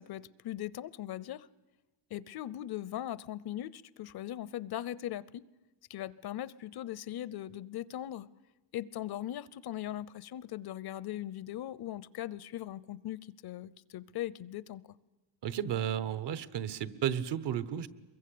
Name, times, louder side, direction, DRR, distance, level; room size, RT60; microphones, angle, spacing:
voice 1, 0.0-1.5 2.1-5.4 5.9-8.3 8.7-14.8, left 12 dB, 60° left, 20 dB, 0.7 m, -39 dB
voice 2, 15.4-17.9, right 9 dB, 70° right, 16 dB, 1.2 m, -33 dB
23.5 x 22.5 x 8.6 m, 1.2 s
cardioid pair, 145°, 43 cm